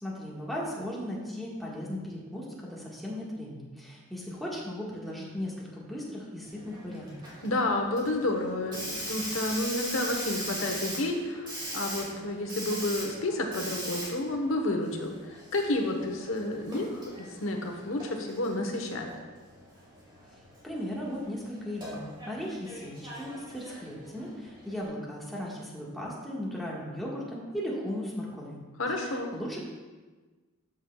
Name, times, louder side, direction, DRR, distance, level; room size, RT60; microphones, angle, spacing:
voice 1, 0.0-7.2 20.6-28.6 28.9-29.6, equal, ahead, -5 dB, 1.6 m, -37 dB
Hiss, 6.5-24.9, right 1 dB, 25° right, 2.4 m, -41 dB
voice 2, 7.4-19.1 28.8-29.3, left 2 dB, 75° left, 3 dB, 1.1 m, -30 dB
13.0 x 6.4 x 2.4 m, 1.3 s
head